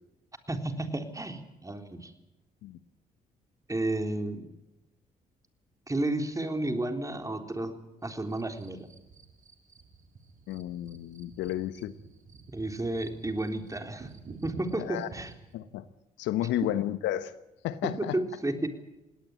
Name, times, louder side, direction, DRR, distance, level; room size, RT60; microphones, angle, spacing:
voice 1, 0.5-2.1 3.7-4.5 5.9-8.9 12.5-14.1 14.4-15.3 17.8-18.7, right 2 dB, 15° right, 6 dB, 3.8 m, -32 dB
sound 1, 8.0-15.5, right 4 dB, 45° right, 3.5 m, -50 dB
voice 2, 10.5-11.9 14.8-15.1 15.5-15.8 16.2-17.3 17.6-18.2, left 13 dB, 70° left, 14 dB, 1.1 m, -32 dB
21.0 x 18.0 x 9.2 m, 0.95 s
hypercardioid pair, 50°, 19 cm